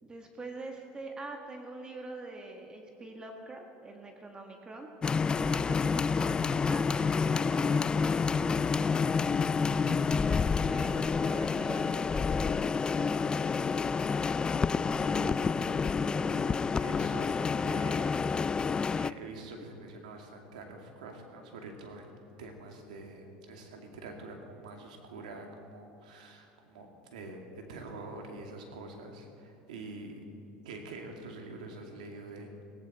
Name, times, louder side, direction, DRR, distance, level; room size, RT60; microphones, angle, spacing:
voice 1, 0.0-4.9 5.4-8.3 9.6-14.3, right 2 dB, 20° right, 3 dB, 1.6 m, -45 dB
sound 1, 5.0-19.1, left 5 dB, 20° left, 0.4 m, -28 dB
voice 2, 14.9-22.1 22.4-30.2 30.6-32.5, right 2 dB, 90° right, 2 dB, 2.4 m, -46 dB
17.0 x 16.5 x 4.3 m, 2.7 s
supercardioid pair, 100°, 4 cm